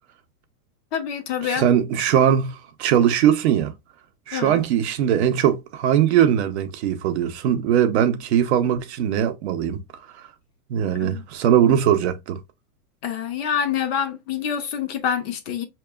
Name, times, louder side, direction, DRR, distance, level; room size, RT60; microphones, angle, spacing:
voice 1, 0.9-1.6 4.3-4.6 11.0-11.2 13.0-15.6, left 8 dB, 40° left, 0.6 m, -26 dB
voice 2, 1.4-3.7 4.3-9.8 10.7-12.4, right 9 dB, 45° right, 0.6 m, -20 dB
4.5 x 2.9 x 2.3 m
supercardioid pair, 155°, 48 cm